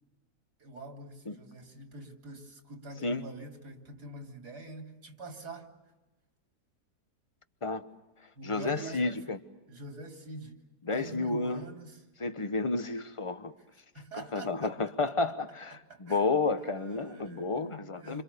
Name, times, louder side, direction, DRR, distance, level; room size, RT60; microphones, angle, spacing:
voice 1, 0.6-5.7 8.4-9.2 9.7-10.6 10.9-12.0 13.9-14.7 15.7-16.2 16.6-18.2, right 2 dB, 80° right, 3.8 m, -45 dB
voice 2, 8.4-9.4 10.8-11.6 12.2-13.5 14.1-18.2, left 3 dB, 20° left, 1.1 m, -31 dB
28.5 x 27.0 x 6.9 m
omnidirectional pair, 1.7 m